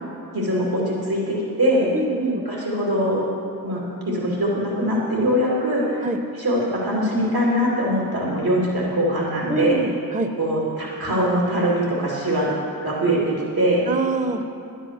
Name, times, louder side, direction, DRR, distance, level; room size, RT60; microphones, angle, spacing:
voice 1, 0.3-1.9 2.5-3.2 3.6-6.1 6.4-9.8 10.3-12.5 12.8-13.8, equal, 85° right, -5 dB, 2.6 m, -22 dB
voice 2, 1.9-2.4 6.0-6.2 9.5-10.3 13.9-14.4, right 3 dB, 20° right, 7 dB, 0.7 m, -25 dB
11.0 x 9.9 x 6.3 m, 2.5 s
cardioid pair, 40°, 36 cm